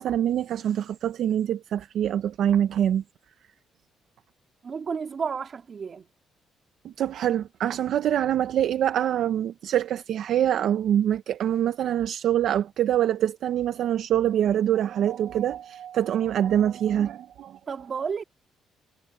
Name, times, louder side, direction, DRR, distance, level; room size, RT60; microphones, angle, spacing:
voice 1, 0.0-3.0 6.8-17.6, right 10 dB, 75° right, 0.8 m, -25 dB
voice 2, 4.6-6.1 17.7-18.2, right 6 dB, 45° right, 2.6 m, -31 dB
cardioid pair, 90°, 0 cm